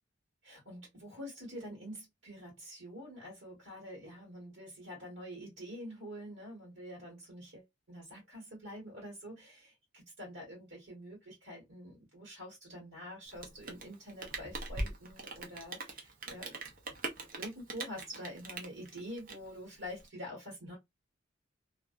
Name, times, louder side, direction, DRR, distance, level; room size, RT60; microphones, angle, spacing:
voice 1, 0.4-16.5 17.3-20.8, equal, 70° right, 1.5 m, -46 dB
Rain, 13.3-20.1, right 2 dB, 45° right, 0.7 m, -42 dB
2.5 x 2.2 x 2.4 m
head